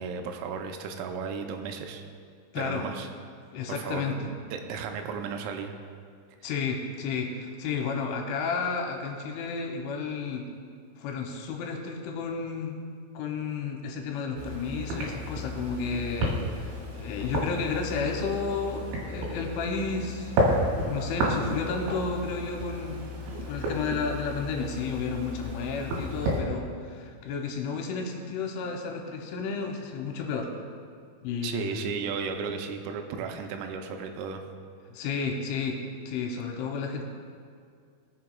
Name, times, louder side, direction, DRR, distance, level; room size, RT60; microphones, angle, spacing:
voice 1, 0.0-2.0 2.6-3.1 3.7-5.7 31.4-34.4, right 6 dB, 90° right, 5 dB, 3.3 m, -34 dB
voice 2, 2.5-2.9 3.5-4.3 6.4-10.5 11.0-12.8 13.1-20.4 20.8-23.0 23.5-30.5 31.2-31.9 34.9-37.1, left 5 dB, 85° left, 1 dB, 3.1 m, -32 dB
sound 1, 14.4-26.4, equal, 70° right, 4.1 m, -32 dB
20.0 x 6.9 x 2.3 m, 2.2 s
omnidirectional pair, 5.9 m